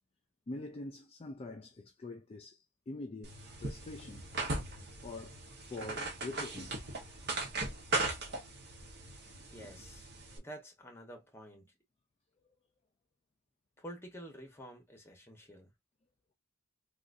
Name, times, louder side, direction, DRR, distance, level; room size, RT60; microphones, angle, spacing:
voice 1, 0.5-3.3 3.6-4.3 5.0-6.8 10.3-10.4, left 2 dB, 25° left, 0.4 m, -45 dB
sound 1, 3.2-10.4, right 2 dB, 50° right, 1.0 m, -39 dB
voice 2, 9.4-10.1 10.3-11.7 13.8-15.7, right 1 dB, 10° left, 1.0 m, -49 dB
3.7 x 2.4 x 2.6 m
head